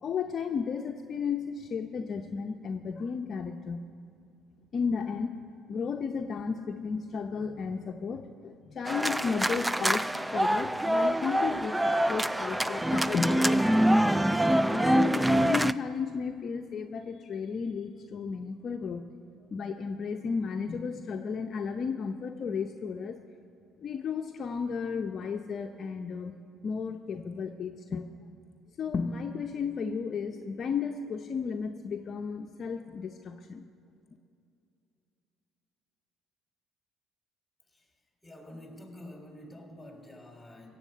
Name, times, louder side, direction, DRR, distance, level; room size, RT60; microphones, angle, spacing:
voice 1, 0.0-3.9 4.7-5.3 5.7-14.1 14.7-19.0 19.5-23.2 23.8-26.3 26.6-28.0 28.8-33.6, left 5 dB, 50° left, 4 dB, 0.7 m, -33 dB
sound 1, 8.9-15.7, right 1 dB, 10° right, 0.3 m, -25 dB
voice 2, 38.2-40.8, left 1 dB, 10° left, 2 dB, 3.2 m, -48 dB
16.5 x 7.9 x 6.7 m, 2.5 s
supercardioid pair, 70°, 0 cm